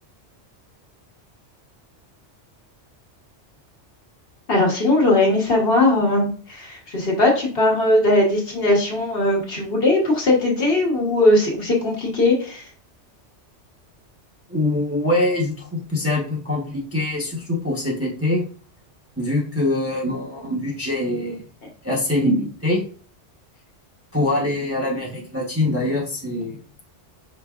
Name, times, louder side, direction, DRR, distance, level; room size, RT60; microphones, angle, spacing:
voice 1, 4.5-12.7 21.6-21.7, left 2 dB, 55° left, -1 dB, 1.3 m, -19 dB
voice 2, 14.5-18.4 19.2-21.5 21.8-22.8 24.1-26.6, left 1 dB, 15° right, -3 dB, 0.8 m, -23 dB
5.1 x 3.8 x 2.4 m, 0.42 s
omnidirectional pair, 1.2 m